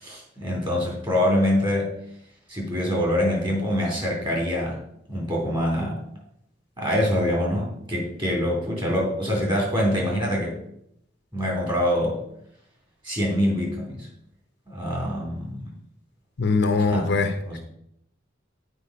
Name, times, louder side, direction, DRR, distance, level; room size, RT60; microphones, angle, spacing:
voice 1, 0.0-1.9 2.5-4.8 5.1-6.0 6.8-10.6 11.3-12.2 13.0-14.1 14.7-15.7 16.4-17.1 17.4-17.6, equal, 25° right, 3.2 m, -25 dB
voice 2, 16.4-17.6, left 3 dB, 60° left, 0.8 m, -22 dB
8.3 x 4.9 x 5.1 m
head